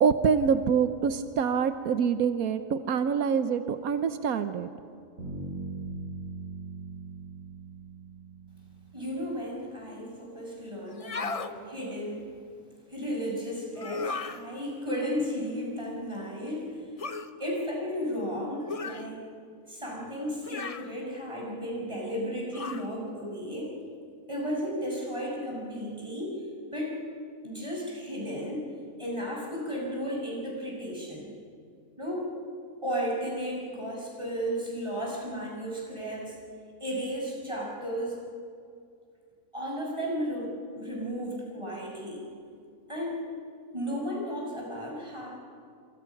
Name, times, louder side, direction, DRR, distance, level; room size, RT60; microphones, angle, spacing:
voice 1, 0.0-4.7, right 6 dB, 90° right, 10 dB, 1.3 m, -25 dB
Bass guitar, 5.2-9.2, right 3 dB, 60° right, 8.6 m, -40 dB
voice 2, 8.9-12.3 12.9-16.8 17.4-19.3 19.7-23.8 24.3-26.4 26.7-27.0 27.4-28.6 29.0-31.3 32.0-32.3 32.8-36.3 36.8-38.2 39.5-42.3 42.9-43.2 43.7-45.3, equal, 20° right, -3 dB, 6.4 m, -34 dB
sound 1, 10.9-11.5 13.8-14.4 17.0-17.3 18.7-19.1 20.4-20.9 22.5-22.9, left 4 dB, 30° left, 0.7 m, -35 dB
26.5 x 25.0 x 6.0 m, 2.3 s
omnidirectional pair, 1.5 m